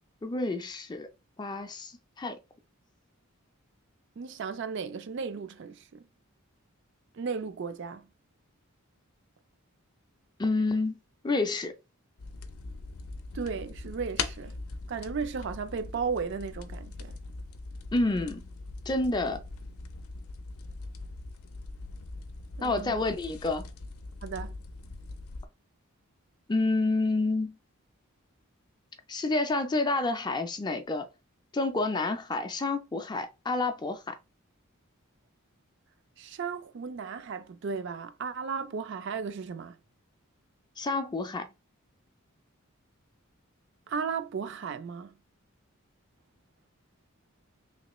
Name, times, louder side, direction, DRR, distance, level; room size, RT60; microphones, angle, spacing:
voice 1, 0.2-1.1 1.4-1.9 2.2-2.4 10.4-11.0 11.2-11.7 17.9-18.4 18.9-19.4 22.6-23.6 26.5-27.6 29.1-31.1 31.5-34.2 40.8-41.5, left 2 dB, 20° left, 0.4 m, -29 dB
voice 2, 4.2-6.0 7.1-8.1 13.3-14.5 14.9-17.2 22.6-23.0 24.2-24.5 36.2-39.8 43.9-45.1, right 5 dB, 55° right, 0.4 m, -35 dB
sound 1, 12.2-25.5, left 3 dB, 85° left, 0.5 m, -41 dB
3.2 x 2.9 x 3.0 m
head